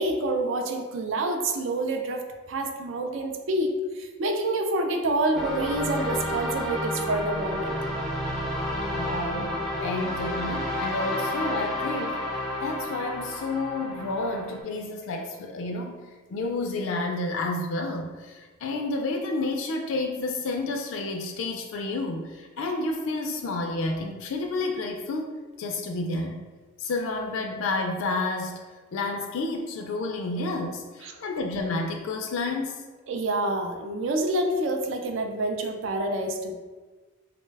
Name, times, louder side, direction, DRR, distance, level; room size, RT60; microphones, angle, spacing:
voice 1, 0.0-7.8 31.0-31.1 33.1-36.5, right 2 dB, 65° right, 4 dB, 0.4 m, -27 dB
sound 1, 5.3-14.6, left 1 dB, ahead, 0.4 m, -30 dB
voice 2, 8.9-12.2 12.6-16.0 16.3-25.3 25.6-26.4 26.8-28.6 28.9-32.8, left 2 dB, 70° left, 2 dB, 0.3 m, -30 dB
3.9 x 2.1 x 3.2 m, 1.3 s
head